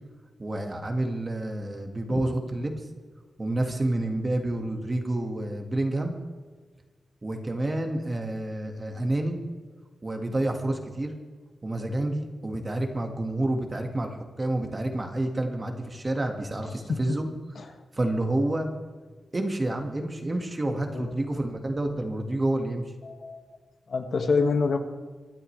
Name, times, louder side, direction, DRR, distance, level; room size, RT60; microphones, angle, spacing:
voice 1, 0.4-2.7 3.4-6.1 7.2-9.4 10.0-11.1 11.6-17.3 17.9-18.7 19.3-22.8, right 1 dB, 25° right, 4 dB, 1.8 m, -29 dB
voice 2, 23.0-23.4 23.9-24.8, left 4 dB, 60° left, 4 dB, 1.7 m, -26 dB
25.5 x 12.0 x 3.3 m, 1.4 s
wide cardioid pair, 160°, 0 cm